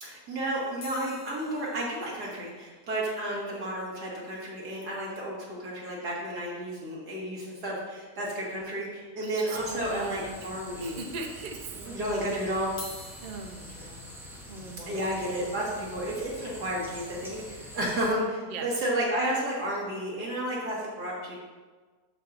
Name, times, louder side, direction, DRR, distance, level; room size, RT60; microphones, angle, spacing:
voice 1, 0.0-11.0 11.7-12.7 14.9-21.3, right 1 dB, 85° right, -5 dB, 2.3 m, -32 dB
sound 1, 0.8-5.2 5.5-5.6 5.7-5.9 6.3-6.4 7.8-7.9 8.5-9.1 9.6-9.7 10.5-10.6 12.6-18.7 19.3-19.5, left 2 dB, 85° left, 2.1 m, -50 dB
voice 2, 9.2-11.7 13.2-14.0 14.5-15.4 18.5-18.8, right 4 dB, 45° right, 2 dB, 0.6 m, -41 dB
sound 2, 9.5-18.1, equal, 5° right, 0.4 m, -45 dB
13.0 x 4.6 x 2.5 m, 1.4 s
omnidirectional pair, 1.7 m